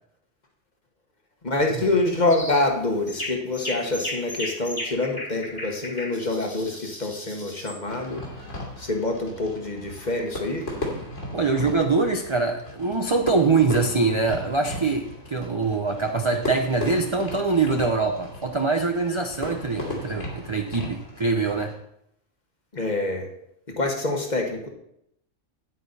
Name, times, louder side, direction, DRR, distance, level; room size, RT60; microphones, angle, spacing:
voice 1, 1.4-8.2 8.8-10.7 22.7-23.3 23.8-24.7, left 2 dB, 35° left, 2 dB, 1.5 m, -26 dB
sound 1, 2.3-2.7 3.1-7.8, left 1 dB, 15° left, 1.8 m, -35 dB
Fireworks, 7.8-21.8, left 1 dB, 60° left, 2.8 m, -36 dB
voice 2, 11.3-21.7, right 4 dB, 35° right, 4 dB, 0.5 m, -23 dB
9.2 x 8.9 x 4.1 m, 0.76 s
omnidirectional pair, 1.4 m